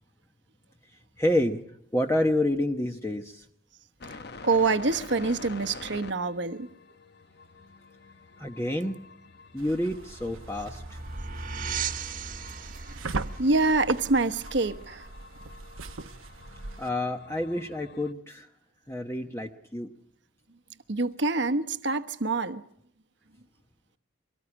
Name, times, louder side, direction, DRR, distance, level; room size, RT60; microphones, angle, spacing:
voice 1, 1.2-1.6 1.9-3.4 8.4-9.0 9.5-11.0 16.8-18.5 18.9-19.9, left 1 dB, 10° left, 1.0 m, -28 dB
sound 1, 4.0-18.1, left 3 dB, 50° left, 0.9 m, -48 dB
voice 2, 4.4-6.7 12.9-15.1 20.9-22.6, right 3 dB, 60° right, 1.1 m, -26 dB
sound 2, 9.6-16.9, right 3 dB, 85° right, 1.0 m, -40 dB
sound 3, 10.0-15.1, right 5 dB, 40° right, 1.4 m, -38 dB
24.0 x 19.0 x 9.9 m
head